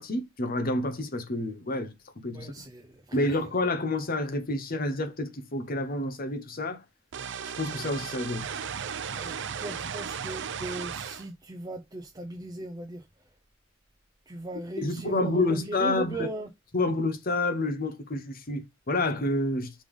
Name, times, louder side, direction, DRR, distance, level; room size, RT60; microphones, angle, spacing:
voice 1, 0.0-2.5 3.1-6.8 7.6-8.5 14.8-16.3 16.7-19.7, left 2 dB, 45° left, 0.9 m, -29 dB
voice 2, 2.3-3.4 9.1-13.0 14.3-16.5, right 1 dB, 20° right, 0.7 m, -38 dB
sound 1, 7.1-11.3, right 7 dB, 60° right, 0.5 m, -35 dB
5.2 x 3.4 x 5.3 m
head